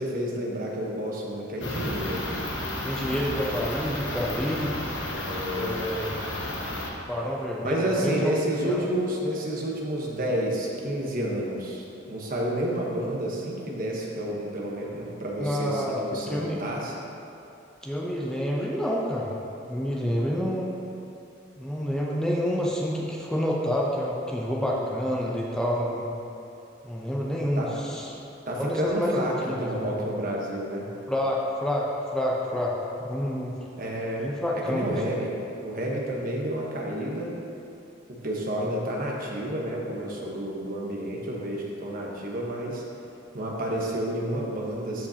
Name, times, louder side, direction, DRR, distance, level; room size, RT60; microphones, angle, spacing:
voice 1, 0.0-2.3 5.2-5.8 7.6-16.9 27.6-27.7 28.5-30.9 33.8-34.3 34.5-35.3 35.6-37.3 38.1-42.8 43.3-45.1, right 1 dB, 45° right, -2 dB, 1.1 m, -30 dB
sound 1, 1.6-6.9, left 1 dB, 65° left, 1.2 m, -32 dB
voice 2, 2.8-4.7 5.5-6.1 7.1-8.3 8.6-8.8 15.4-16.6 17.8-19.3 19.7-20.7 21.6-26.1 26.8-28.2 28.6-29.9 31.1-33.5 34.2-35.0, equal, 5° left, -4 dB, 0.6 m, -28 dB
13.5 x 5.2 x 2.9 m, 2.8 s
head